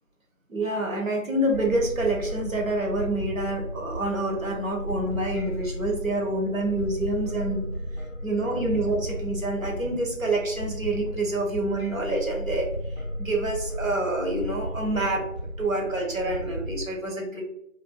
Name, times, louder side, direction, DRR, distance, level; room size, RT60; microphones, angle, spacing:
voice 1, 0.5-7.7 8.2-12.7 13.0-15.2 15.6-17.4, right 2 dB, 75° right, 0 dB, 0.9 m, -27 dB
sound 1, 1.5-16.8, equal, 50° left, 0.4 m, -34 dB
2.5 x 2.3 x 2.2 m, 0.77 s
figure-of-eight pair, 165°, 41 cm